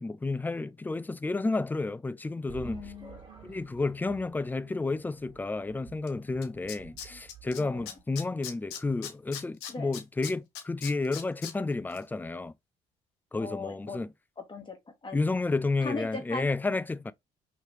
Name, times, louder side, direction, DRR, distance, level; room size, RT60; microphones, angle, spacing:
voice 1, 0.0-2.8 3.4-12.5 13.3-14.1 15.1-17.1, left 3 dB, 10° left, 0.3 m, -31 dB
sound 1, 2.5-8.0, right 6 dB, 30° right, 1.8 m, -51 dB
voice 2, 2.6-3.3 7.1-7.2 7.6-8.0 9.7-9.9 13.4-14.0 14.4-15.2 15.8-16.5, left 3 dB, 30° left, 1.3 m, -39 dB
Tools, 6.1-6.2 6.4-7.6 7.9-11.5 11.9-12.0, left 9 dB, 85° left, 0.7 m, -39 dB
3.1 x 2.8 x 3.1 m
supercardioid pair, 65°, 16 cm